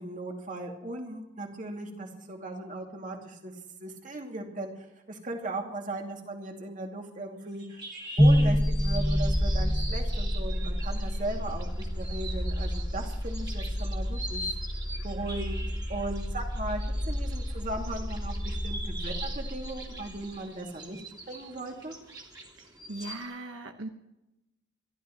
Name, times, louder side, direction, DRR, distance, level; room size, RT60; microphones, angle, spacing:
voice 1, 0.0-3.5 3.8-7.8 8.2-14.5 15.0-15.6 15.9-21.0 21.3-21.9, right 2 dB, 40° right, 2 dB, 2.4 m, -38 dB
sound 1, 7.5-23.2, right 1 dB, 20° right, 2.5 m, -43 dB
sound 2, 8.2-20.2, equal, ahead, 0.4 m, -29 dB
voice 2, 22.6-23.9, right 2 dB, 85° right, 5 dB, 1.1 m, -39 dB
26.5 x 12.5 x 3.0 m, 0.92 s
head